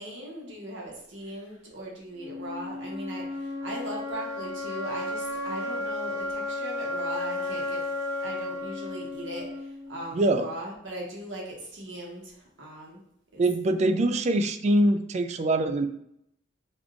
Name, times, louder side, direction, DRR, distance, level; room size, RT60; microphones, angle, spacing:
voice 1, 0.0-7.8 8.2-13.0 13.3-13.4, right 1 dB, 75° right, -2 dB, 1.3 m, -39 dB
sound 1, 2.2-10.2, left 2 dB, 15° right, 0.9 m, -33 dB
voice 2, 10.1-10.5 13.4-15.9, right 1 dB, 35° right, 9 dB, 0.3 m, -23 dB
5.3 x 2.4 x 3.6 m, 0.78 s
head